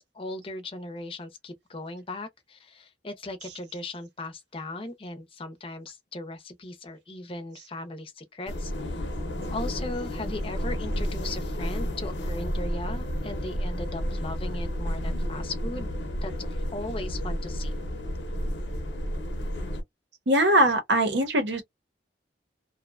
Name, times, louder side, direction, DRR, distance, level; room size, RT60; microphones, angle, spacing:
voice 1, 0.0-9.0 9.5-15.9 16.2-17.7, left 2 dB, 30° left, 0.6 m, -38 dB
sound 1, 8.5-19.8, equal, 80° left, 0.7 m, -31 dB
voice 2, 20.3-21.6, right 1 dB, 70° right, 0.8 m, -21 dB
2.7 x 2.1 x 2.4 m
head